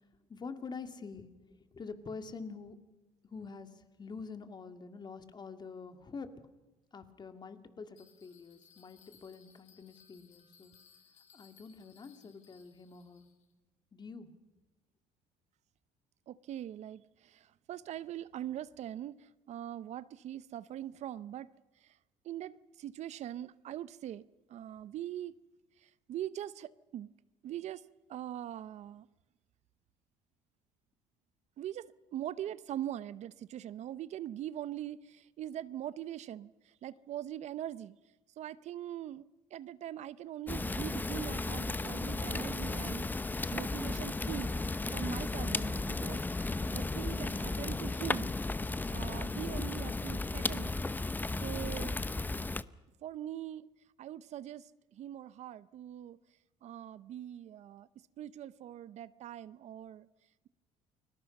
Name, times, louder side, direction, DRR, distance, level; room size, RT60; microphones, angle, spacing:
voice 1, 0.3-1.3 1.7-2.8 3.2-6.3 6.9-10.7 11.3-13.3 13.9-14.3, left 4 dB, 35° left, 2.2 m, -46 dB
Bell, 8.0-13.5, left 7 dB, 65° left, 3.6 m, -64 dB
voice 2, 16.3-21.5 21.8-22.0 22.2-24.2 24.5-25.4 25.8-27.1 27.4-27.8 28.1-29.1 31.6-37.9 38.4-44.5 44.9-48.3 48.9-51.0 51.4-52.0 53.0-53.7 54.0-56.2 56.6-60.1, right 12 dB, 60° right, 0.7 m, -42 dB
Fire, 40.5-52.6, left 3 dB, 15° left, 0.7 m, -35 dB
29.5 x 21.0 x 5.4 m
supercardioid pair, 90°, 13 cm